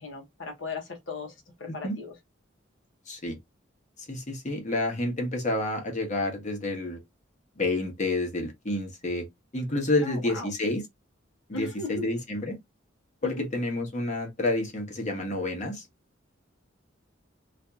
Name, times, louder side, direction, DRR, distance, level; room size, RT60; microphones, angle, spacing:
voice 1, 0.0-2.1 10.0-10.5 11.5-12.1 13.2-13.5, left 3 dB, 70° left, 0.9 m, -37 dB
voice 2, 3.1-3.4 4.1-7.0 7.6-9.2 9.5-10.8 11.5-12.6 13.2-15.9, left 2 dB, 40° left, 1.0 m, -29 dB
2.8 x 2.5 x 2.3 m
head